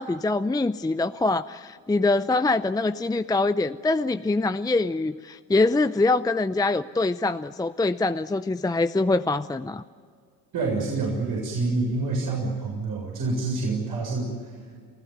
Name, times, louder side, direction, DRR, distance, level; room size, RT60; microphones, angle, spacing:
voice 1, 0.0-9.8, left 2 dB, 10° left, 11 dB, 0.6 m, -24 dB
voice 2, 10.5-14.6, right 3 dB, 60° right, -1 dB, 6.9 m, -27 dB
29.0 x 16.0 x 9.4 m, 2.1 s
supercardioid pair, 75°, 40 cm